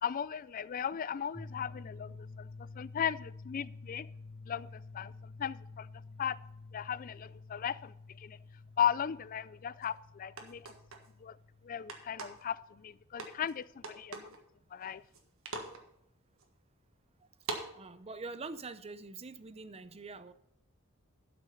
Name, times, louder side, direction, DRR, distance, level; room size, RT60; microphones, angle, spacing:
voice 1, 0.0-2.5 2.8-4.1 4.5-5.9 6.2-6.4 6.7-8.4 8.8-10.7 11.2-11.4 11.6-14.4 14.7-15.0, left 9 dB, 40° left, 0.3 m, -36 dB
sound 1, 1.3-13.2, left 3 dB, 5° right, 0.9 m, -50 dB
sound 2, 9.8-9.9 10.4-11.1 11.9-12.5 13.2-13.5 13.8-14.4 14.8-15.2 15.5-15.8 16.4-16.5 17.4-17.7, right 3 dB, 70° right, 1.5 m, -41 dB
voice 2, 17.7-20.3, right 3 dB, 30° right, 0.5 m, -44 dB
12.0 x 6.1 x 5.7 m
head